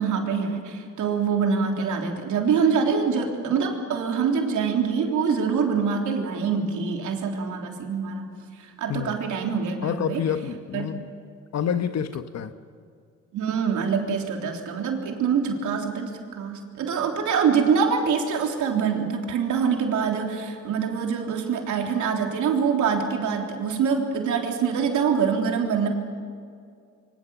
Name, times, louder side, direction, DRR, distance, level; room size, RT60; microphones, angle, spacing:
voice 1, 0.0-8.3 8.6-10.2 10.7-11.0 13.3-25.9, right 6 dB, 75° right, 3.6 m, -25 dB
voice 2, 9.8-11.0 11.5-12.5, left 8 dB, 60° left, 1.3 m, -28 dB
26.5 x 24.0 x 7.1 m
cardioid pair, 90°, 30 cm